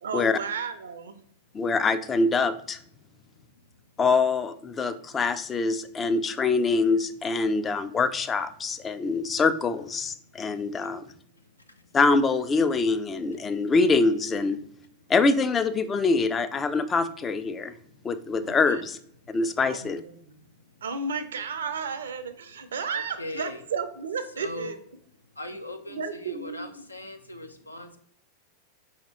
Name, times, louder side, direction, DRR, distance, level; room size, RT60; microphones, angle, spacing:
voice 1, 0.0-1.2 18.4-18.8 19.7-20.5 20.8-24.8 25.9-26.9, right 5 dB, 65° right, 11 dB, 0.5 m, -33 dB
voice 2, 1.5-2.8 4.0-11.1 11.9-14.6 15.1-17.7 18.0-19.0 19.3-20.0, left 4 dB, 20° left, 11 dB, 0.3 m, -24 dB
voice 3, 22.9-23.6 24.4-24.7 25.4-28.0, left 1 dB, 80° left, 6 dB, 0.5 m, -39 dB
5.2 x 2.8 x 2.9 m, 0.64 s
figure-of-eight pair, 90°, 0 cm